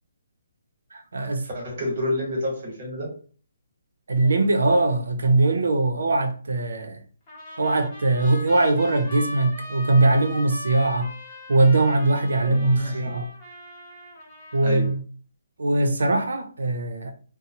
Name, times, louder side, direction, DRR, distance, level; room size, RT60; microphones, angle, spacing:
voice 1, 0.9-1.5 4.1-7.0 7.6-11.1 11.5-13.3 14.5-15.0 15.6-17.1, right 2 dB, 90° right, 0.5 m, -21 dB
voice 2, 1.5-3.2 12.4-13.1 14.6-14.9, left 1 dB, 35° right, 1.0 m, -29 dB
Trumpet, 7.3-14.9, left 1 dB, 20° left, 0.7 m, -40 dB
2.8 x 2.0 x 2.7 m
hypercardioid pair, 175°, 0 cm